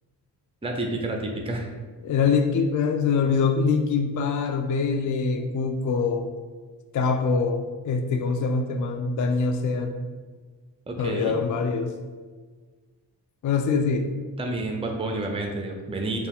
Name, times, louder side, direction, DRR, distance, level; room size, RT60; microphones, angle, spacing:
voice 1, 0.6-1.7 10.9-11.4 14.4-16.3, right 2 dB, 15° right, 2 dB, 0.6 m, -29 dB
voice 2, 2.0-6.3 6.9-10.0 11.0-11.9 13.4-14.1, left 5 dB, 45° left, 6 dB, 0.4 m, -24 dB
4.4 x 2.4 x 3.5 m, 1.4 s
cardioid pair, 50°, 43 cm